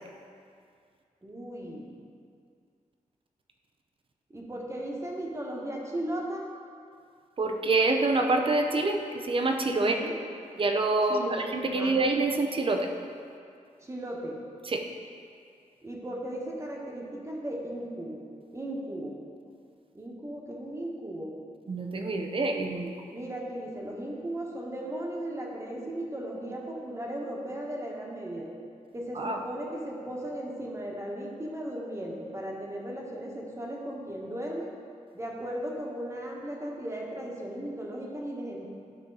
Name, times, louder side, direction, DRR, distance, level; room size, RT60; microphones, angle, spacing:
voice 1, 1.2-1.9 4.3-6.5 9.8-10.2 11.1-12.0 13.8-14.4 15.8-18.3 18.5-19.2 19.9-21.3 23.1-28.5 28.9-34.7 35.1-38.7, right 1 dB, 20° right, -2 dB, 1.3 m, -36 dB
voice 2, 7.4-10.0 10.6-12.9 14.6-14.8 21.7-23.0 29.2-29.4, right 2 dB, 40° right, 4 dB, 0.7 m, -26 dB
11.5 x 4.5 x 3.9 m, 2.3 s
wide cardioid pair, 120°, 13 cm